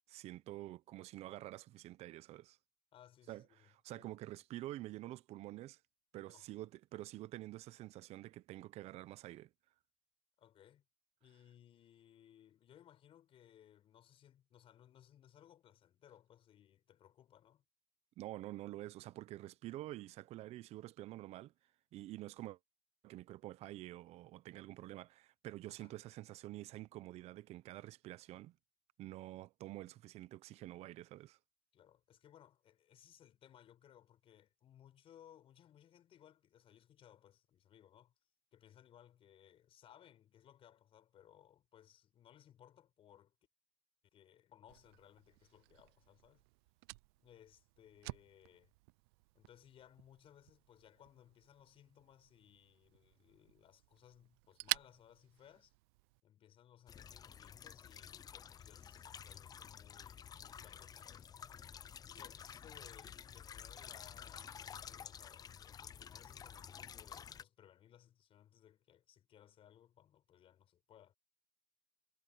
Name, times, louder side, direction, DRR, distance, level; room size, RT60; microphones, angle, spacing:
voice 1, 0.1-2.6 3.3-3.4 3.8-5.8 6.1-9.5 18.2-21.5 21.9-22.6 23.0-28.5 29.0-31.4, right 16 dB, 55° right, 1.1 m, -48 dB
voice 2, 2.9-4.3 6.1-6.5 10.4-10.8 11.2-17.6 25.7-25.9 31.7-38.1 38.5-43.3 44.1-46.4 47.2-48.7 49.3-55.7 56.2-61.5 62.1-71.1, left 10 dB, 45° left, 6.4 m, -63 dB
Fire, 44.7-56.2, right 26 dB, 75° right, 0.5 m, -49 dB
sound 1, 56.9-67.4, left 8 dB, 30° left, 0.6 m, -51 dB
supercardioid pair, 100°, 13 cm